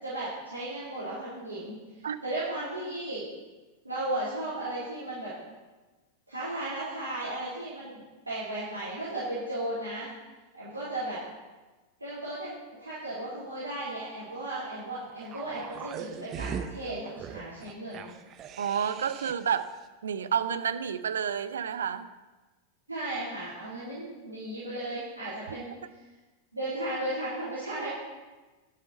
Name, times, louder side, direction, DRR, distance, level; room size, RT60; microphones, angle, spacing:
voice 1, 0.0-3.3 3.8-5.3 6.3-10.1 10.5-11.2 12.0-12.5 12.8-18.1 22.9-25.8 26.5-27.9, right 1 dB, 80° right, -10 dB, 3.8 m, -35 dB
sound 1, 15.2-19.6 19.8-19.9, right 7 dB, 30° right, 0.8 m, -40 dB
voice 2, 18.6-19.7 20.0-22.1 25.5-25.6, right 8 dB, 65° right, 12 dB, 0.7 m, -30 dB
11.0 x 9.9 x 5.5 m, 1.2 s
figure-of-eight pair, 90°, 0 cm